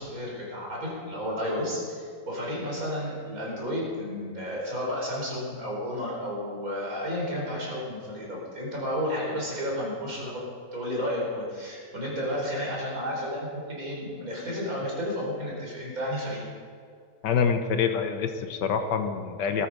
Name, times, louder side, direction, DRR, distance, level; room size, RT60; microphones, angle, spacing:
voice 1, 0.0-10.4 10.7-16.4, equal, 55° right, -4 dB, 5.5 m, -32 dB
voice 2, 17.2-19.7, left 6 dB, 90° left, 7 dB, 1.6 m, -26 dB
19.5 x 13.0 x 5.2 m, 2.2 s
omnidirectional pair, 1.8 m